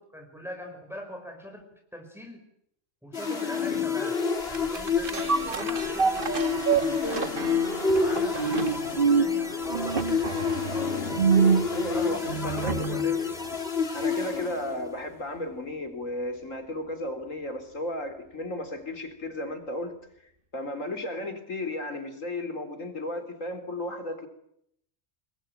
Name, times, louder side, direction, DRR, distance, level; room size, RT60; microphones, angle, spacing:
voice 1, 0.0-2.4 3.0-7.4 8.0-11.1 11.9-13.4, left 1 dB, ahead, 3 dB, 4.9 m, -42 dB
sound 1, 3.1-15.0, left 6 dB, 50° left, 3.1 m, -29 dB
sound 2, 4.5-13.1 13.5-13.6, right 5 dB, 45° right, 1.8 m, -27 dB
voice 2, 11.7-13.2 13.9-19.9 20.5-24.3, left 1 dB, 85° left, 8 dB, 4.3 m, -34 dB
29.5 x 21.0 x 9.2 m, 0.74 s
omnidirectional pair, 1.3 m